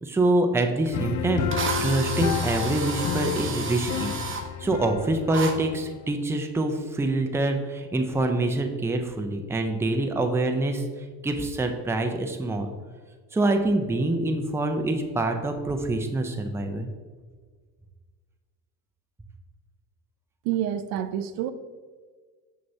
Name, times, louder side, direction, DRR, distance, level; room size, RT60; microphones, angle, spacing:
voice 1, 0.0-1.5 1.8-4.1 4.6-10.8 11.2-12.7 13.3-16.9, right 2 dB, 5° right, 5 dB, 0.5 m, -25 dB
sound 1, 0.9-6.1, left 8 dB, 50° left, 0.5 m, -31 dB
Drill, 0.9-1.0 1.5-4.4 5.3-5.5, right 4 dB, 30° right, 0.8 m, -31 dB
voice 2, 20.4-21.5, right 11 dB, 80° right, 10 dB, 0.5 m, -28 dB
6.4 x 5.8 x 2.7 m, 1.5 s
supercardioid pair, 105°, 41 cm